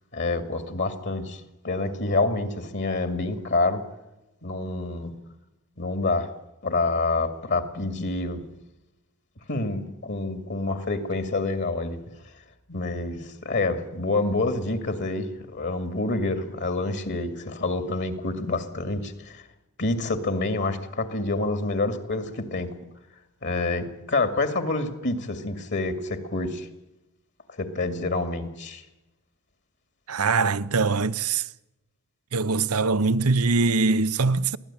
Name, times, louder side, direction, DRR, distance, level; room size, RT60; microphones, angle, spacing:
voice 1, 0.1-3.8 4.4-5.1 5.8-6.3 6.6-8.4 9.5-12.0 12.7-19.4 19.8-22.7 23.4-26.7 27.5-28.9, left 2 dB, 50° left, 2.3 m, -27 dB
voice 2, 30.1-31.5 32.3-34.6, right 4 dB, 85° right, 0.9 m, -22 dB
23.5 x 16.0 x 8.9 m
head